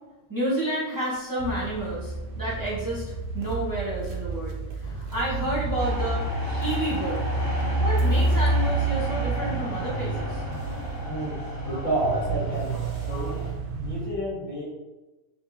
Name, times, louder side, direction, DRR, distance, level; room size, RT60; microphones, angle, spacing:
voice 1, 0.3-7.2 7.8-10.4, right 1 dB, 15° right, -9 dB, 1.2 m, -30 dB
sound 1, 1.4-14.1, right 3 dB, 80° right, 1.0 m, -29 dB
Car, 4.8-11.0 11.3-11.4, left 4 dB, 55° left, 0.5 m, -38 dB
sound 2, 5.8-13.5, equal, 20° left, 0.8 m, -36 dB
voice 2, 11.0-11.4 11.7-12.8 13.1-13.4 13.8-14.6, right 1 dB, 85° left, -7 dB, 2.1 m, -29 dB
3.5 x 3.4 x 2.8 m, 1.1 s
omnidirectional pair, 1.3 m